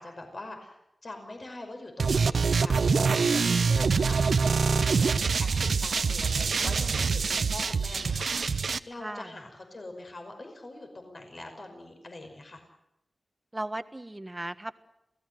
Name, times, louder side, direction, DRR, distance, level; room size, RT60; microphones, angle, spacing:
voice 1, 0.0-12.6, left 2 dB, 50° left, 4 dB, 5.5 m, -44 dB
sound 1, 2.0-8.8, right 5 dB, 85° right, 0.9 m, -25 dB
voice 2, 13.5-14.7, right 1 dB, 20° right, 11 dB, 1.4 m, -36 dB
28.0 x 18.0 x 7.8 m, 0.85 s
wide cardioid pair, 100°, 0 cm